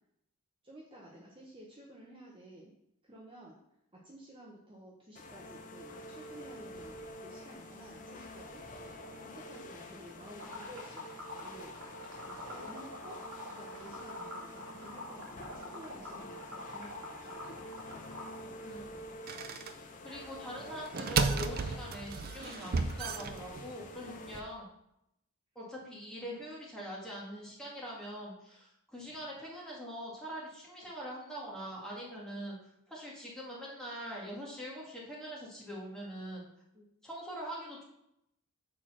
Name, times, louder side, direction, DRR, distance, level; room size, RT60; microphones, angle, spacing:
voice 1, 0.6-2.7 3.0-3.6 3.9-8.6 9.2-12.0 12.3-17.5 24.0-24.2 36.7-36.9, right 1 dB, 25° right, -3 dB, 0.9 m, -52 dB
sound 1, 5.1-24.4, left 1 dB, 35° left, 0.7 m, -48 dB
Liquid, 10.4-18.4, left 1 dB, 70° right, 2.6 m, -46 dB
voice 2, 18.6-18.9 20.0-24.7 25.6-32.6 32.9-36.4 37.0-37.8, equal, 5° left, -5 dB, 1.9 m, -43 dB
sound 2, 19.3-19.7 20.8-23.9, right 4 dB, 40° right, 0.5 m, -33 dB
6.4 x 4.5 x 5.9 m, 0.81 s
head